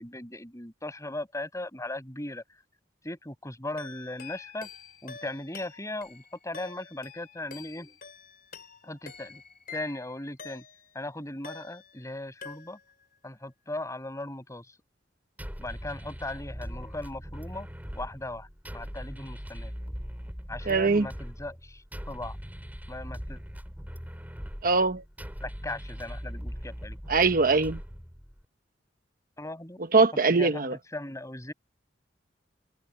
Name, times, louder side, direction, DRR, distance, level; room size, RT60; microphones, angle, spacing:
voice 1, 0.0-2.4 3.0-4.7 5.0-8.0 8.8-9.4 9.7-10.6 10.9-12.8 13.2-14.7 15.6-17.7 17.9-18.5 18.7-19.7 20.5-22.4 22.9-23.4 25.4-27.0 29.4-29.8 30.4-31.5, left 2 dB, 20° left, 5.9 m, -38 dB
sound 1, 3.8-11.0 11.4-12.1 12.4-13.0, left 6 dB, 55° left, 4.6 m, -47 dB
sound 2, 15.4-28.4, equal, 10° right, 5.9 m, -40 dB
voice 2, 20.7-21.1 24.6-25.0 27.1-27.8 29.9-30.8, right 4 dB, 55° right, 1.1 m, -22 dB
head